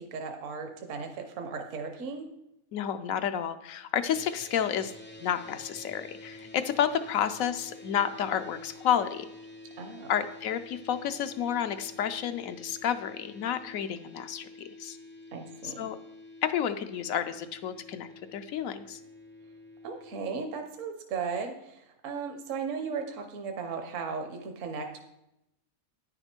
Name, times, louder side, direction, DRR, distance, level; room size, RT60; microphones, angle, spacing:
voice 1, 0.0-2.2 9.8-10.1 15.3-15.9 19.8-25.0, right 5 dB, 60° right, 5 dB, 1.2 m, -36 dB
voice 2, 2.7-4.9 5.2-9.3 10.1-14.5 14.8-15.0 15.6-16.0 16.4-19.0, left 9 dB, 75° left, 10 dB, 1.0 m, -30 dB
sound 1, 4.1-20.2, left 2 dB, 15° left, 0.4 m, -49 dB
9.8 x 6.6 x 4.5 m, 0.86 s
omnidirectional pair, 1.5 m